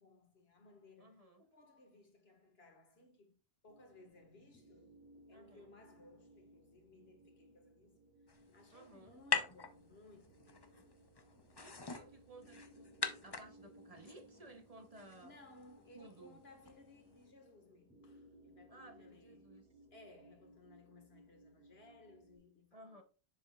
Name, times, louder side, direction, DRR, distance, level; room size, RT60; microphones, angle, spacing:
voice 1, 0.0-3.4 3.6-5.0 5.3-8.0 8.3-11.0 15.2-19.6 19.9-23.0, left 2 dB, 75° left, 1.8 m, -62 dB
voice 2, 1.0-1.4 5.3-5.7 8.7-9.1 11.5-15.4 15.9-16.4 18.7-19.7 22.7-23.0, right 2 dB, 40° right, 0.8 m, -57 dB
sound 1, 3.7-22.4, right 1 dB, 10° right, 2.0 m, -63 dB
sound 2, 8.3-17.3, left 5 dB, 30° left, 0.6 m, -44 dB
7.4 x 6.9 x 2.3 m
omnidirectional pair, 1.1 m